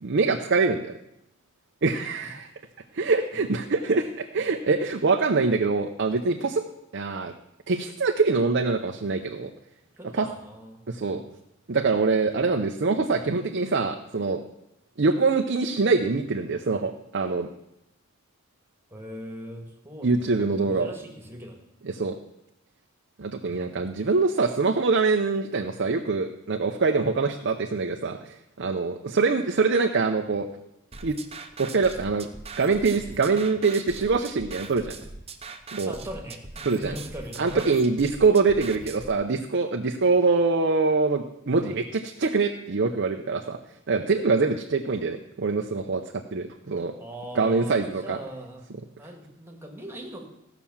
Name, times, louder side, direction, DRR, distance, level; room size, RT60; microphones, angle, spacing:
voice 1, 0.0-0.9 1.8-2.5 2.9-6.6 6.9-7.3 7.7-9.5 10.1-10.3 10.9-11.2 11.7-14.4 15.0-17.5 20.0-20.9 21.8-22.2 23.2-30.5 31.0-31.2 31.6-32.3 32.6-35.0 35.7-36.0 36.6-36.9 37.4-43.6 43.9-46.9 47.4-48.2, right 4 dB, 55° right, 4 dB, 0.7 m, -24 dB
voice 2, 10.0-10.8 11.1-11.3 18.9-21.6 26.9-27.1 35.8-37.7 41.6-41.8 47.0-48.7 49.0-50.2, equal, 10° right, 2 dB, 2.0 m, -40 dB
sound 1, 30.9-39.1, right 4 dB, 30° right, 0.9 m, -41 dB
15.5 x 5.9 x 7.1 m, 0.84 s
head